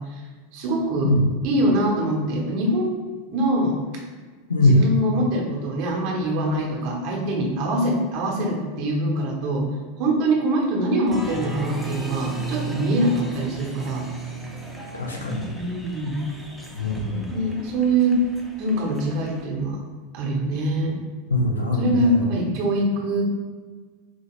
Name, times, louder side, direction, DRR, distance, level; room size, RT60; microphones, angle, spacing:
voice 1, 0.5-1.2 1.4-3.0 3.3-3.7 4.6-9.7 10.0-14.0 15.4-16.2 17.3-18.2 18.6-19.8 20.1-21.0 21.8-23.2, right 1 dB, 50° right, -1 dB, 1.1 m, -23 dB
voice 2, 4.5-4.8 14.9-15.4 16.8-17.3 21.3-22.1, left 1 dB, 85° left, 0 dB, 0.6 m, -21 dB
Applause, 11.1-19.5, right 3 dB, ahead, 0.8 m, -35 dB
4.5 x 2.8 x 3.0 m, 1.4 s
figure-of-eight pair, 85°, 0 cm